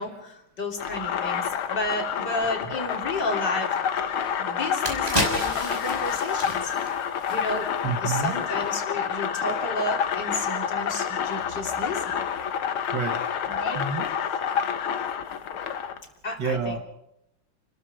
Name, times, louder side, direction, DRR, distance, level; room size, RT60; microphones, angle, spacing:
voice 1, 0.0-3.9 4.4-6.7 7.3-7.7 8.0-12.2 13.5-13.8 16.2-16.7, left 2 dB, 55° left, 2 dB, 3.8 m, -32 dB
sound 1, 0.8-16.0, left 8 dB, 85° left, 2.0 m, -28 dB
sound 2, 4.1-4.2 4.6-7.9 8.2-8.4, equal, 15° right, 5.1 m, -31 dB
voice 2, 7.8-8.4 12.9-13.2 13.7-14.1 16.4-16.8, right 5 dB, 60° right, 6 dB, 2.3 m, -28 dB
29.0 x 21.0 x 5.0 m, 0.81 s
omnidirectional pair, 2.3 m